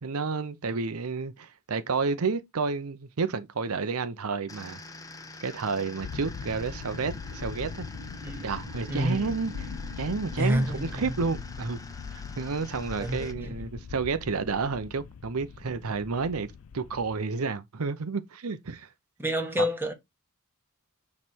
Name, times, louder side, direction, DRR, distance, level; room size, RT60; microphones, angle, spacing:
voice 1, 0.0-4.8 5.4-7.9 8.4-9.7 10.0-11.8 12.1-16.5 16.7-18.9 19.6-19.7, right 4 dB, 85° right, 0.7 m, -30 dB
sound 1, 4.5-13.3, left 2 dB, 15° left, 0.8 m, -46 dB
sound 2, 4.8-15.9, equal, 45° right, 2.5 m, -50 dB
sound 3, 6.0-17.2, left 6 dB, 75° left, 0.4 m, -41 dB
voice 2, 8.9-9.3 10.4-11.0 13.0-13.6 19.2-19.9, equal, 10° right, 1.7 m, -28 dB
9.6 x 3.3 x 4.4 m
head